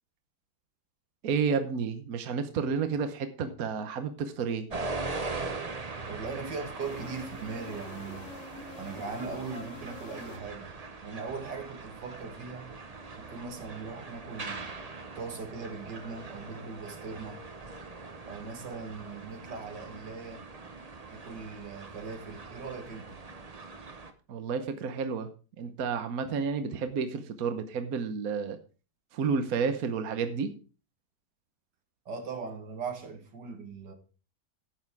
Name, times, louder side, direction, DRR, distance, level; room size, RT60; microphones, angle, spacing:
voice 1, 1.2-4.7 24.3-25.3 25.6-28.6 29.1-30.5, right 5 dB, 60° right, 1.4 m, -31 dB
sound 1, 4.7-24.1, right 3 dB, 25° right, 0.9 m, -41 dB
voice 2, 6.0-8.3 8.8-12.7 13.2-14.7 15.2-17.5 18.3-20.4 21.1-23.2 32.1-33.9, right 4 dB, 85° right, 2.4 m, -40 dB
sound 2, 6.8-10.9, left 4 dB, 85° left, 2.4 m, -47 dB
12.0 x 8.0 x 4.7 m
omnidirectional pair, 1.8 m